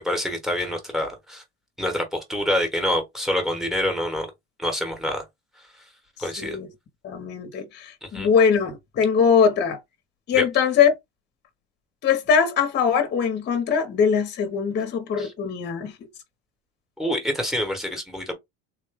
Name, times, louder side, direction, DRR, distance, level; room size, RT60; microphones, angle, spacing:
voice 1, 0.0-1.4 1.8-4.3 4.6-5.2 6.2-6.6 8.0-8.3 10.3-10.4 15.2-15.3 17.0-18.3, left 1 dB, ahead, 1.0 m, -26 dB
voice 2, 6.4-6.7 7.0-9.8 10.3-10.9 12.0-16.1, left 6 dB, 35° left, 0.8 m, -21 dB
3.8 x 2.1 x 3.3 m
cardioid pair, 150°, 31 cm